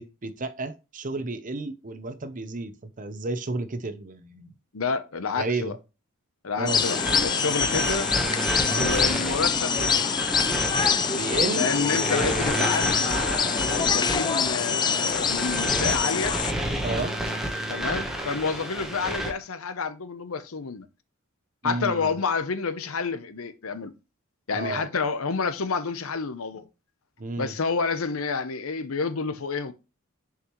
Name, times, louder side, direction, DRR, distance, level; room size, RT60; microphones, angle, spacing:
voice 1, 0.0-4.5 5.3-5.8 6.6-6.8 7.6-7.7 8.7-8.9 11.1-11.7 16.8-17.2 21.6-22.1 24.5-24.9 27.2-27.5, right 2 dB, 40° right, 0.7 m, -32 dB
voice 2, 4.7-5.7 6.4-8.1 8.7-10.1 11.6-16.4 17.7-20.9 21.6-23.9 24.5-26.7 27.4-29.7, left 5 dB, 75° left, 0.7 m, -29 dB
sound 1, 6.7-16.5, left 6 dB, 20° left, 0.4 m, -25 dB
sound 2, 6.7-19.3, right 1 dB, ahead, 1.0 m, -31 dB
sound 3, 6.9-16.5, left 1 dB, 45° left, 2.0 m, -43 dB
6.6 x 4.9 x 3.0 m
head